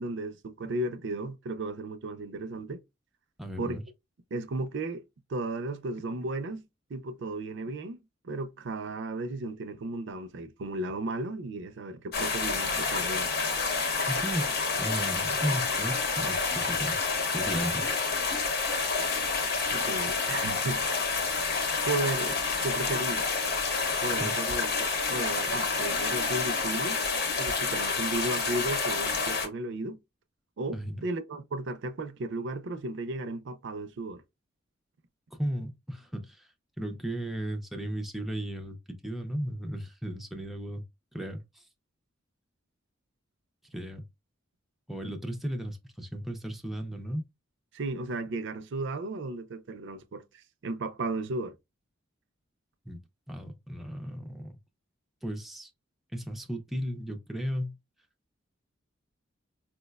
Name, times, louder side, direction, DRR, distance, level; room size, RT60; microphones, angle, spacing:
voice 1, 0.0-2.8 3.6-3.8 4.3-5.0 5.3-8.0 8.2-13.3 19.7-20.8 21.8-23.3 24.0-24.7 25.1-27.0 27.4-30.0 30.6-34.2 47.7-51.6, right 2 dB, 65° right, 0.5 m, -34 dB
voice 2, 3.4-3.8 14.1-17.0 17.3-17.9 24.2-24.4 30.7-31.0 35.3-36.5 36.8-40.8 41.1-41.6 43.7-44.0 44.9-47.2 52.9-53.0 53.3-54.6 55.2-55.7 56.1-57.8, equal, ahead, 0.4 m, -35 dB
sound 1, 12.1-29.5, left 4 dB, 55° left, 0.8 m, -29 dB
4.5 x 2.1 x 2.2 m
head